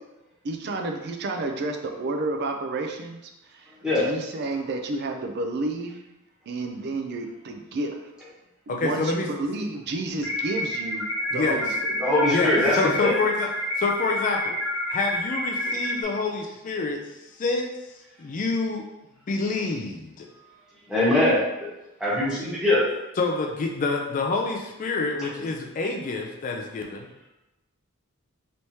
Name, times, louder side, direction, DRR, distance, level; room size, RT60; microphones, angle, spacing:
voice 1, 0.4-3.7 3.9-6.0 6.5-8.0 8.7-11.1 11.3-12.0, right 2 dB, 50° right, 4 dB, 0.4 m, -30 dB
voice 2, 8.7-9.3 11.3-11.6 12.3-13.5 13.8-14.6 14.9-17.0 17.3-17.7 18.2-18.8 19.3-20.3 22.3-22.4 23.2-27.1, left 3 dB, 35° left, 1 dB, 0.3 m, -27 dB
sound 1, 10.2-16.0, left 1 dB, 55° left, 0.7 m, -29 dB
voice 3, 12.0-13.1 20.9-21.4 22.0-22.8, left 1 dB, 5° right, -9 dB, 1.1 m, -21 dB
3.3 x 3.1 x 2.7 m, 0.96 s
head